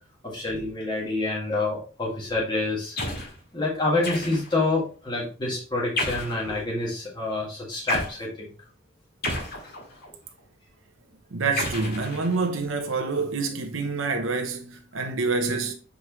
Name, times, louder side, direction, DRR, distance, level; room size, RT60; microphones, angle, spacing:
voice 1, 0.2-3.3 3.5-8.5, left 2 dB, 25° left, 1.9 m, -27 dB
sound 1, 3.0-3.4 4.0-4.6 6.0-6.4 7.9-8.2 9.2-10.1 11.6-12.6, left 1 dB, 55° left, 2.1 m, -31 dB
voice 2, 11.3-15.7, right 4 dB, 75° right, 0.9 m, -27 dB
6.5 x 4.8 x 3.1 m
head